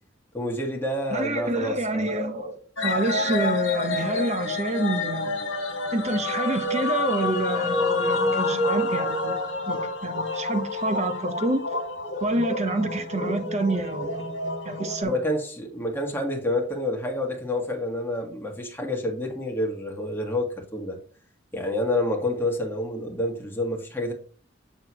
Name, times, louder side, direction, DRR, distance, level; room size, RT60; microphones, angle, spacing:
voice 1, 0.3-2.1 15.0-21.0 21.5-24.1, left 1 dB, 10° left, 1.7 m, -28 dB
voice 2, 1.1-5.3 5.9-9.4 9.7-11.6 12.2-14.4 14.6-15.2, right 1 dB, 35° right, 1.0 m, -27 dB
sound 1, 2.8-15.0, left 2 dB, 70° left, 2.2 m, -28 dB
7.8 x 6.9 x 3.1 m
head